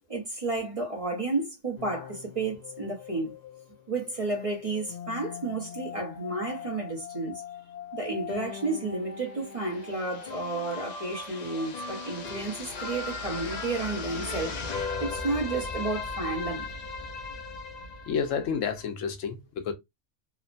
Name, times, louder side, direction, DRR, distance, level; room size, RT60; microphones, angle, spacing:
voice 1, 0.1-3.3 3.9-7.4 7.9-16.7, right 3 dB, 35° right, 0.7 m, -32 dB
sound 1, 1.8-18.9, left 4 dB, 60° left, 0.4 m, -38 dB
voice 2, 18.1-19.7, left 6 dB, 90° left, 1.0 m, -30 dB
3.0 x 2.1 x 2.4 m
omnidirectional pair, 1.3 m